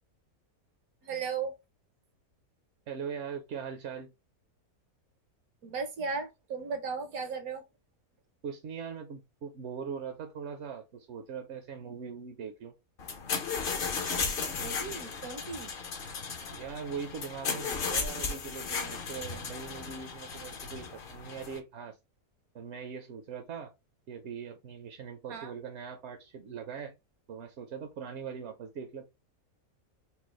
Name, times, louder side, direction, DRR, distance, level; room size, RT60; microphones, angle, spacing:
voice 1, 1.0-1.5 5.6-7.6 14.6-15.7 25.3-25.5, right 5 dB, 75° right, 1.3 m, -36 dB
voice 2, 2.9-4.1 8.4-12.7 16.5-22.0 22.5-23.7 24.1-26.9 27.3-29.1, right 6 dB, 60° right, 0.8 m, -41 dB
sound 1, 13.0-21.6, left 5 dB, 50° left, 0.7 m, -35 dB
4.5 x 2.0 x 3.1 m
omnidirectional pair, 1.5 m